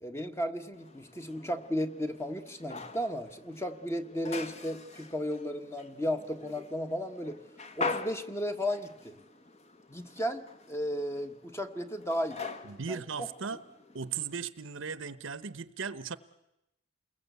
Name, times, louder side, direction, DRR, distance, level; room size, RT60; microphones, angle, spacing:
voice 1, 0.0-7.4 7.7-9.2 9.9-12.4 12.9-13.0, equal, 15° left, 7 dB, 1.4 m, -34 dB
sound 1, 0.7-14.5, left 3 dB, 35° left, 1.6 m, -43 dB
voice 2, 12.6-13.6 13.9-16.2, right 6 dB, 70° right, 14 dB, 1.0 m, -37 dB
28.5 x 21.5 x 8.3 m, 0.89 s
head